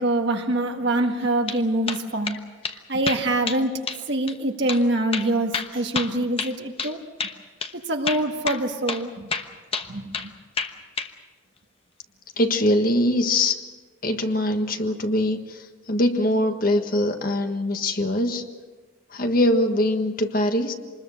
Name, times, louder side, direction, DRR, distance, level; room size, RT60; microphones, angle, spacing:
voice 1, 0.0-2.4 2.9-7.0 7.9-9.3 9.9-10.3, right 1 dB, 55° right, 4 dB, 1.8 m, -25 dB
sound 1, 1.2-1.6 1.9-2.4 2.6-2.8 3.1-3.6 3.9-4.0 4.3-4.4 4.7-4.8 5.1-6.9 7.2-7.4 7.6-7.7 8.1-8.6 8.9-9.0 9.3-10.3 10.6-11.1, left 5 dB, 30° left, 1.1 m, -29 dB
voice 2, 12.4-13.6 14.0-18.5 19.1-20.7, left 1 dB, 45° left, 6 dB, 1.5 m, -22 dB
26.0 x 21.0 x 6.5 m, 1.4 s
head